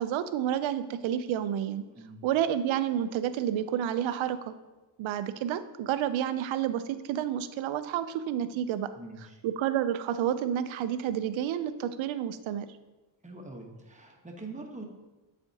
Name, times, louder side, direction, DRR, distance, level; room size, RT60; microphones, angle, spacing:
voice 1, 0.0-1.8 2.2-4.5 5.0-8.9 9.4-12.7, right 10 dB, 80° right, 12 dB, 0.6 m, -30 dB
voice 2, 9.0-9.4 13.2-14.8, right 2 dB, 15° right, 1 dB, 1.1 m, -44 dB
9.6 x 4.2 x 2.8 m, 1.1 s
cardioid pair, 95°, 47 cm